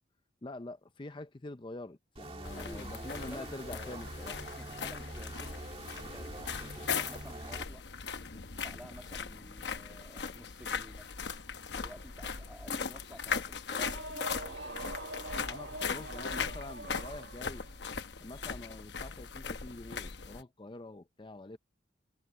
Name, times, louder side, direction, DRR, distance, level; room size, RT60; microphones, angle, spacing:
voice 1, 0.4-4.4 15.4-17.7 18.2-21.6, left 2 dB, 25° left, 0.5 m, -45 dB
sound 1, 2.2-7.7, right 1 dB, 30° right, 1.8 m, -45 dB
sound 2, 2.4-20.4, left 6 dB, 70° left, 1.0 m, -39 dB
voice 2, 2.6-4.0 4.6-7.9 8.2-11.1 11.7-14.9, equal, 5° right, 1.7 m, -52 dB
sound 3, 13.7-17.7, right 2 dB, 90° right, 1.4 m, -44 dB
head